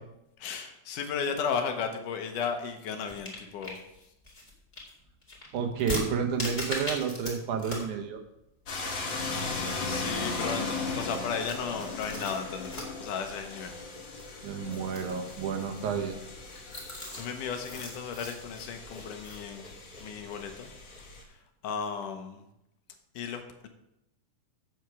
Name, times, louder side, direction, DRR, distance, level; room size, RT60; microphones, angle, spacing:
voice 1, 0.4-3.8 9.8-13.8 17.2-19.7 20.0-20.7 21.2-22.4 23.1-23.7, left 6 dB, 75° left, 6 dB, 2.4 m, -35 dB
sound 1, 3.1-7.3 7.6-7.9 8.2-8.3 8.7-9.8 10.1-21.1, left 1 dB, 15° left, 2.1 m, -40 dB
voice 2, 5.5-8.2 14.4-16.2, right 6 dB, 70° right, 4 dB, 2.3 m, -30 dB
sound 2, 8.7-21.2, left 3 dB, 45° left, 1.7 m, -38 dB
8.1 x 7.6 x 6.0 m, 0.85 s
omnidirectional pair, 3.9 m